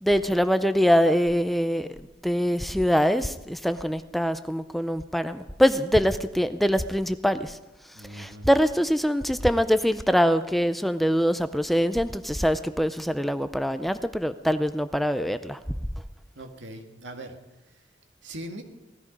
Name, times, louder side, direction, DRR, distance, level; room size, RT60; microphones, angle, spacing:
voice 1, 0.0-2.0 2.2-7.6 8.1-15.6, equal, ahead, 11 dB, 0.5 m, -24 dB
voice 2, 7.9-8.5 16.3-17.4 17.7-17.8 18.2-18.6, right 1 dB, 85° right, 5 dB, 2.1 m, -40 dB
18.5 x 14.0 x 5.3 m, 1.0 s
head